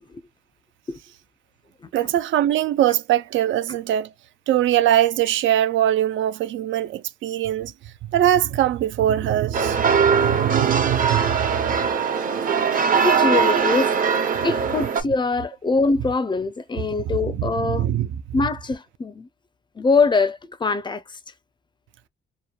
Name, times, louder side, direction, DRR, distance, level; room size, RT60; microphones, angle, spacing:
voice 1, 1.9-4.1 4.5-7.7 8.1-11.7 17.3-18.1, right 12 dB, 75° right, 0.4 m, -22 dB
sound 1, 9.5-15.0, right 6 dB, 45° right, 0.7 m, -21 dB
voice 2, 13.0-13.9 14.4-17.9 18.3-19.3 19.8-21.2, left 4 dB, 25° left, 0.5 m, -23 dB
2.9 x 2.1 x 2.3 m
cardioid pair, 90°, 20 cm